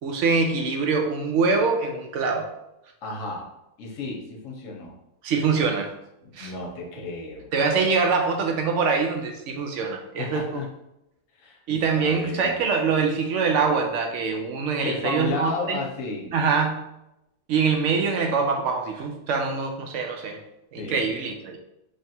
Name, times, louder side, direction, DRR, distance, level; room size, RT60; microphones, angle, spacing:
voice 1, 0.0-2.5 5.2-5.9 6.3-6.5 7.5-10.4 11.7-15.8 16.3-16.9 17.5-20.4 20.7-21.6, right 5 dB, 65° right, 3 dB, 0.8 m, -24 dB
voice 2, 3.0-3.5 3.8-5.0 6.2-7.5 10.2-10.7 11.4-12.6 14.8-16.3 20.8-21.1, left 3 dB, 60° left, 0 dB, 1.1 m, -33 dB
3.3 x 2.4 x 4.2 m, 0.86 s
omnidirectional pair, 1.6 m